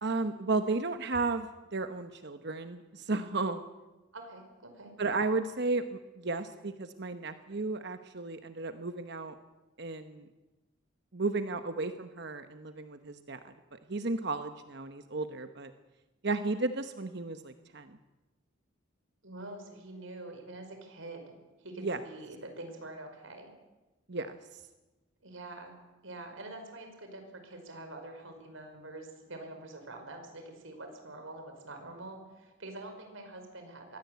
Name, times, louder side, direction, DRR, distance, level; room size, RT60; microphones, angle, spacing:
voice 1, 0.0-3.6 5.0-9.4 9.8-10.3 11.1-15.7 16.2-18.0 21.8-22.0 24.1-24.4, right 3 dB, 55° right, 9 dB, 1.0 m, -34 dB
voice 2, 4.1-4.9 19.2-21.2 21.6-23.5 25.2-25.8 26.0-34.0, right 2 dB, 70° right, 5 dB, 5.3 m, -45 dB
22.5 x 17.0 x 8.3 m, 1.1 s
head